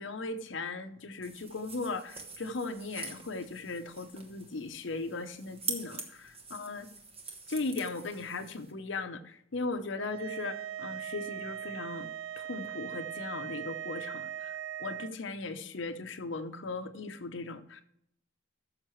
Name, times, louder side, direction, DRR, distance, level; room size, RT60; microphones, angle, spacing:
voice 1, 0.0-6.9 7.5-12.1 12.4-17.8, left 3 dB, 70° left, 9 dB, 0.7 m, -38 dB
sound 1, 1.2-8.7, right 4 dB, 30° right, 1.1 m, -44 dB
sound 2, 10.0-15.1, right 10 dB, 70° right, 0.3 m, -40 dB
14.0 x 6.6 x 3.1 m, 0.73 s
head